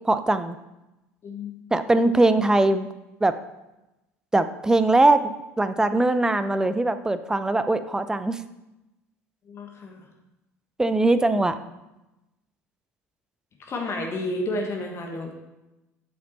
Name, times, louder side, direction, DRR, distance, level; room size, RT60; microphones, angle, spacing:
voice 1, 0.0-0.6 1.7-2.9 3.2-3.3 4.3-8.4 10.8-11.6, right 2 dB, 10° right, 12 dB, 0.5 m, -21 dB
voice 2, 1.2-1.5 1.8-2.1 9.5-10.1 11.3-11.5 13.6-15.4, left 1 dB, 35° left, 2 dB, 1.4 m, -31 dB
8.5 x 7.5 x 4.1 m, 0.98 s
figure-of-eight pair, 65°, 8 cm